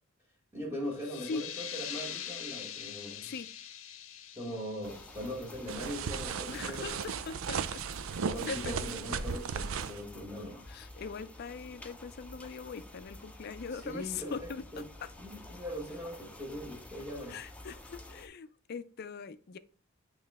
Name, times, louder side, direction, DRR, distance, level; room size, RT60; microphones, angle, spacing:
voice 1, 0.5-3.3 4.4-6.9 8.3-10.6 13.7-14.8 15.2-17.4, equal, 10° right, 1.2 m, -40 dB
sound 1, 0.9-6.3, left 10 dB, 80° left, 0.7 m, -44 dB
sound 2, 4.8-18.3, left 1 dB, 5° left, 0.6 m, -50 dB
sound 3, 5.7-10.0, right 6 dB, 75° right, 0.4 m, -36 dB
voice 2, 6.5-7.8 8.5-8.7 10.7-14.6 15.0-15.1 17.3-19.6, left 5 dB, 50° left, 0.4 m, -41 dB
8.7 x 3.1 x 3.4 m
head